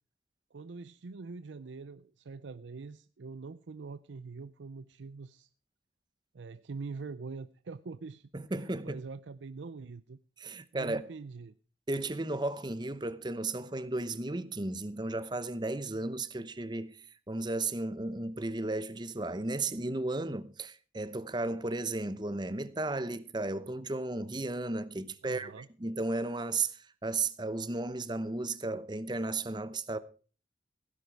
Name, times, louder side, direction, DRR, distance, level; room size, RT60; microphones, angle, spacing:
voice 1, 0.5-5.5 6.3-8.3 8.6-10.2 10.7-11.5 25.2-25.7, right 4 dB, 90° right, 0.5 m, -44 dB
voice 2, 8.3-9.0 10.4-11.1 11.9-17.0 17.3-30.0, right 2 dB, 25° right, 0.8 m, -34 dB
16.5 x 10.5 x 4.6 m
head